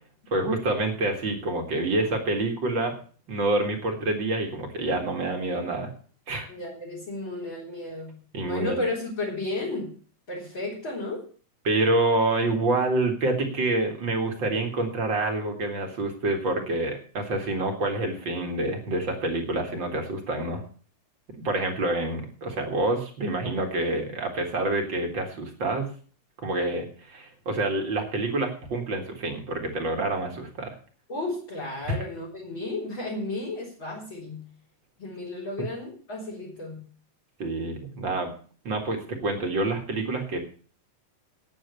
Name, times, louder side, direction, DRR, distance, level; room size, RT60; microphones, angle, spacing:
voice 1, 0.3-3.0 3.3-5.9 6.3-6.5 8.3-8.8 11.6-20.6 21.3-25.9 26.4-30.8 31.9-32.0 37.4-38.3 38.6-40.4, right 2 dB, 40° right, 3 dB, 2.4 m, -27 dB
voice 2, 6.5-9.9 10.3-11.3 31.1-34.5 35.0-36.8, left 2 dB, 40° left, -3 dB, 4.5 m, -33 dB
9.1 x 9.0 x 8.2 m, 0.43 s
omnidirectional pair, 3.4 m